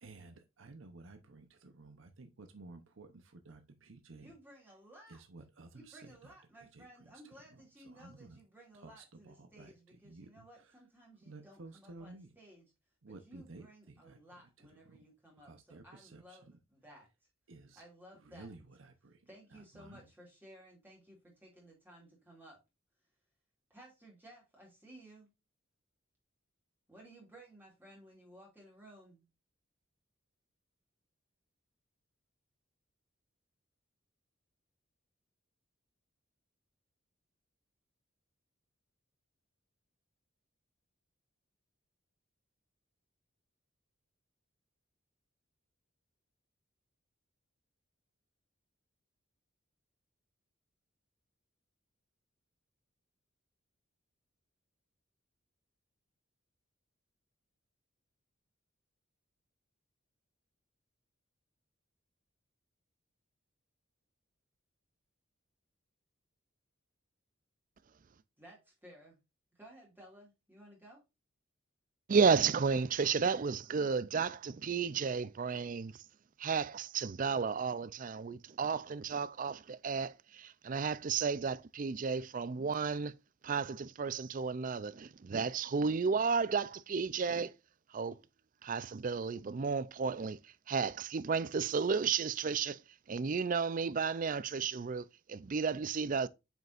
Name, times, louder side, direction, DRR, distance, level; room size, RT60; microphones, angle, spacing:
voice 1, 0.0-4.3 5.1-8.4 8.7-10.8 11.2-12.3 13.0-15.0 15.4-16.6 17.5-17.8 18.1-20.1, right 3 dB, 70° right, 0.8 m, -54 dB
voice 2, 4.1-5.2 5.7-12.7 13.1-17.1 17.8-18.5 19.3-22.6 23.7-25.3 26.9-29.3 68.4-69.2 69.5-71.0, right 1 dB, 10° right, 2.4 m, -57 dB
voice 3, 72.1-75.9 76.4-83.1 83.4-87.5 87.9-88.2 88.6-90.4 90.7-92.8 93.1-96.3, right 5 dB, 40° right, 0.4 m, -33 dB
7.5 x 5.4 x 2.5 m
head